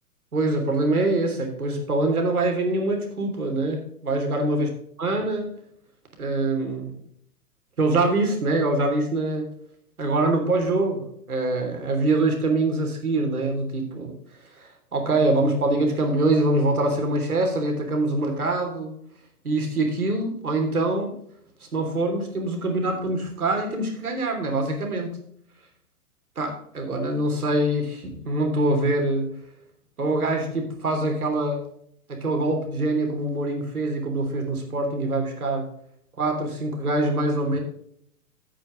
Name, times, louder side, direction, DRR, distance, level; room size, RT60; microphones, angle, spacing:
voice 1, 0.3-4.7 5.0-5.4 6.2-6.9 7.8-9.5 10.0-14.1 14.6-18.9 19.4-21.1 21.7-25.2 26.4-29.3 30.0-31.6 32.1-35.7 36.2-37.6, right 2 dB, 70° right, 3 dB, 3.3 m, -24 dB
9.5 x 8.6 x 4.0 m, 0.68 s
figure-of-eight pair, 120°, 45 cm